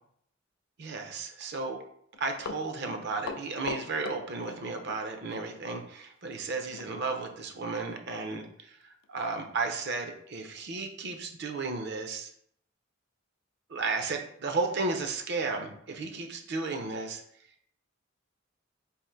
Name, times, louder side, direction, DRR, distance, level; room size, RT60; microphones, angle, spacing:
voice 1, 0.8-1.8 2.2-12.3 13.7-17.2, right 3 dB, 60° right, 5 dB, 0.6 m, -34 dB
Run, 2.1-5.0 5.3-5.5 6.7-6.9 7.3-7.4 7.9-8.0 8.3-8.5 9.0-9.1, left 5 dB, 75° left, 0.4 m, -40 dB
3.6 x 2.5 x 4.4 m, 0.68 s
head